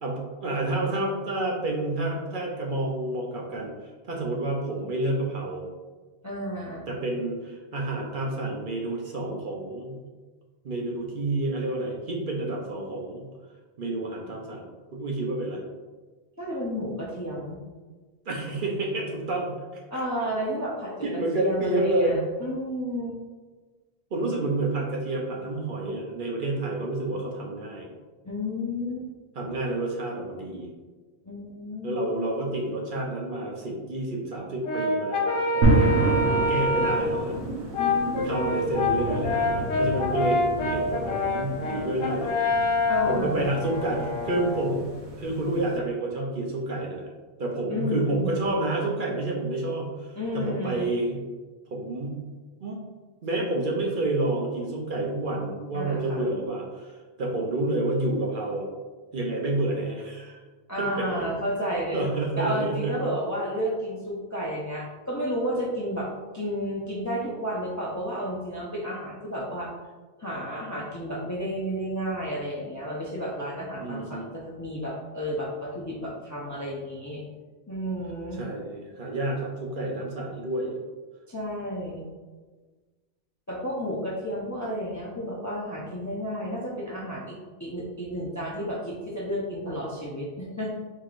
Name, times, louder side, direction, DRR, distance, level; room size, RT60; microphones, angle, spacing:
voice 1, 0.0-3.7 4.1-5.6 6.9-10.0 10.6-13.2 13.8-14.7 14.9-15.6 18.3-19.6 21.0-22.2 24.1-27.9 29.3-30.7 31.8-37.3 38.1-42.3 43.0-44.8 45.2-47.1 47.4-51.2 51.7-52.2 52.6-52.8 53.2-56.9 57.2-58.7 59.1-60.4 60.8-61.3 61.9-63.1 73.8-74.3 78.4-80.8, right 2 dB, 55° right, -1 dB, 0.8 m, -29 dB
voice 2, 6.2-6.9 16.4-17.6 19.9-23.2 28.2-29.1 31.2-32.0 37.8-38.5 42.9-43.5 47.7-48.5 50.2-50.9 55.7-56.2 60.7-62.0 62.4-69.7 70.2-77.2 77.7-78.4 81.3-82.0 83.5-90.8, equal, 20° left, -4 dB, 0.5 m, -32 dB
Brass instrument, 34.6-37.2 37.7-44.7, left 2 dB, 65° left, 0.9 m, -26 dB
sound 1, 35.6-45.8, right 1 dB, 85° right, 1.2 m, -30 dB
4.7 x 3.7 x 2.5 m, 1.3 s
omnidirectional pair, 1.1 m